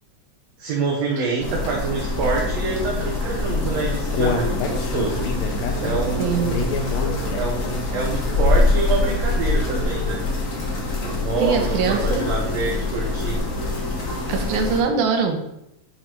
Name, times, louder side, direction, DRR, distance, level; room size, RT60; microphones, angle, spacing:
voice 1, 0.6-5.2 5.8-6.7 7.3-10.2 11.0-13.4, right 4 dB, 65° right, -3 dB, 2.1 m, -26 dB
sound 1, 1.4-14.8, left 2 dB, 40° left, 1.3 m, -24 dB
Human voice, 3.6-7.7 8.1-8.2 8.7-8.8, left 4 dB, 70° left, 2.0 m, -27 dB
voice 2, 6.2-6.6 11.4-12.3 14.3-15.4, right 5 dB, 80° right, 4 dB, 2.4 m, -22 dB
10.0 x 4.1 x 4.6 m, 0.84 s
omnidirectional pair, 3.5 m